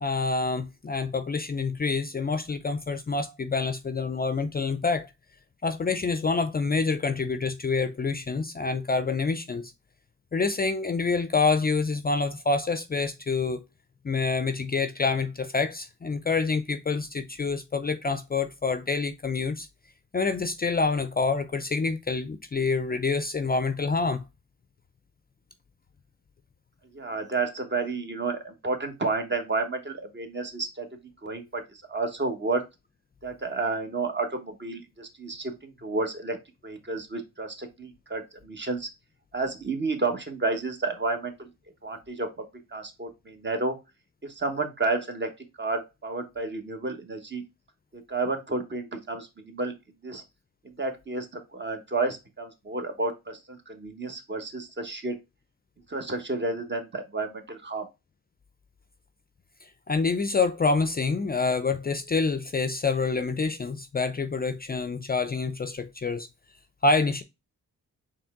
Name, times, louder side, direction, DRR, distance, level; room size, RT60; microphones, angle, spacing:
voice 1, 0.0-5.1 5.6-9.7 10.3-13.6 14.0-19.7 20.1-24.2 59.9-66.3 66.8-67.2, left 4 dB, 30° left, 0.5 m, -27 dB
voice 2, 26.9-30.9 31.2-32.6 33.2-36.4 36.6-38.9 39.3-41.5 41.8-42.3 42.7-43.8 44.2-45.3 45.6-47.4 47.9-49.7 50.0-50.2 50.6-51.3 51.5-55.1 55.9-57.9, right 3 dB, 35° right, 1.2 m, -31 dB
4.4 x 3.2 x 3.6 m
cardioid pair, 70°, 32 cm